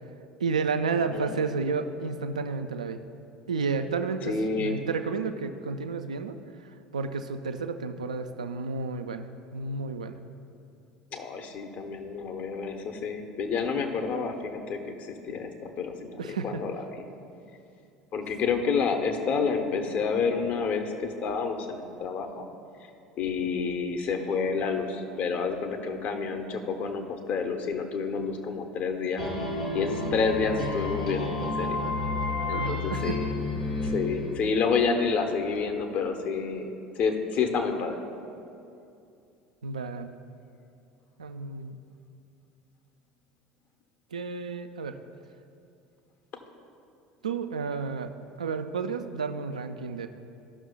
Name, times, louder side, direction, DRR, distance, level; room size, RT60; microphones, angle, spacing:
voice 1, 0.4-3.0 3.5-6.4 6.9-9.3 9.5-10.2 16.2-16.6 32.5-33.2 39.6-40.1 41.2-41.8 44.1-45.0 47.2-48.1 48.4-50.1, right 4 dB, 80° right, 8 dB, 0.4 m, -31 dB
voice 2, 4.3-4.8 11.1-16.8 18.1-22.5 23.2-29.2 29.7-31.8 32.5-33.3 33.8-37.9, left 5 dB, 45° left, 5 dB, 0.8 m, -29 dB
sound 1, 29.2-34.8, left 2 dB, 80° left, 1.6 m, -31 dB
15.0 x 6.1 x 2.3 m, 2.6 s
figure-of-eight pair, 70°, 4 cm